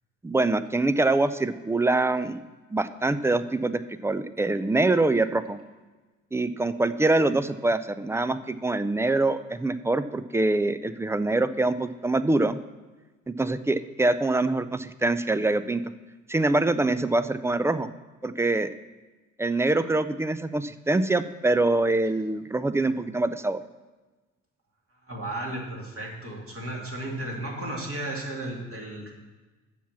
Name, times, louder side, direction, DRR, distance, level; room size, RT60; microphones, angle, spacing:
voice 1, 0.2-2.4 2.7-5.6 6.3-12.6 13.3-15.8 16.3-17.9 18.2-18.7 19.4-23.6, right 2 dB, 5° right, 13 dB, 0.3 m, -24 dB
voice 2, 25.1-29.1, right 1 dB, 35° right, -1 dB, 2.6 m, -34 dB
7.2 x 5.9 x 7.2 m, 1.2 s
hypercardioid pair, 55°, 39 cm